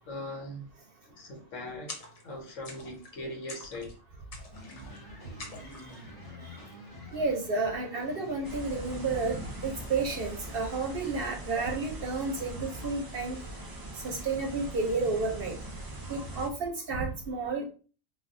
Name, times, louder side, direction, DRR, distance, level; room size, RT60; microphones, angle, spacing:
voice 1, 0.1-0.7 1.0-2.0 2.2-3.9 8.7-8.8, left 1 dB, 80° left, -1 dB, 1.3 m, -40 dB
sound 1, 1.9-2.4 2.6-3.2 3.5-4.0 4.3-5.0 5.4-6.0, left 3 dB, 45° left, 0.5 m, -45 dB
sound 2, 4.5-13.1, left 1 dB, 20° left, 1.0 m, -49 dB
voice 2, 7.1-13.4 14.0-15.5 16.1-17.7, right 3 dB, 55° right, 2 dB, 0.7 m, -31 dB
sound 3, 8.4-16.5, right 1 dB, 35° right, 0.3 m, -41 dB
3.3 x 2.3 x 2.5 m, 0.37 s
omnidirectional pair, 1.3 m